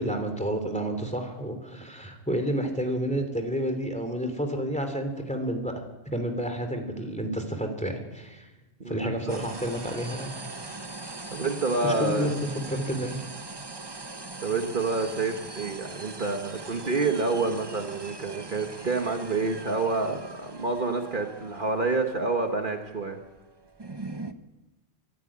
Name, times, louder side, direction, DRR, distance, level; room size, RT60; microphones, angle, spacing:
voice 1, 0.0-5.7 6.1-8.5 8.8-10.3 11.8-12.3 12.7-13.2, equal, 5° left, 5 dB, 3.1 m, -30 dB
voice 2, 8.8-9.4 11.3-12.3 14.4-23.2, right 3 dB, 45° right, 4 dB, 1.5 m, -28 dB
sound 1, 9.3-24.3, right 3 dB, 25° right, 0.9 m, -41 dB
25.0 x 12.5 x 8.8 m, 1.1 s
omnidirectional pair, 1.2 m